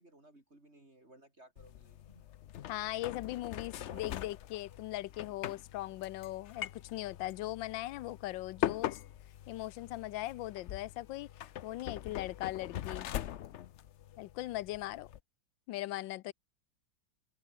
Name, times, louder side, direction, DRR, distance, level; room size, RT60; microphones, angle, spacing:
voice 1, 0.0-2.2 3.8-4.0, right 1 dB, 35° right, 5.1 m, -59 dB
sound 1, 1.6-15.2, left 11 dB, 75° left, 0.6 m, -42 dB
voice 2, 2.7-9.0 9.5-11.3 11.6-13.1 14.2-15.1 15.7-16.3, left 16 dB, 90° left, 1.4 m, -39 dB
open air
omnidirectional pair, 2.0 m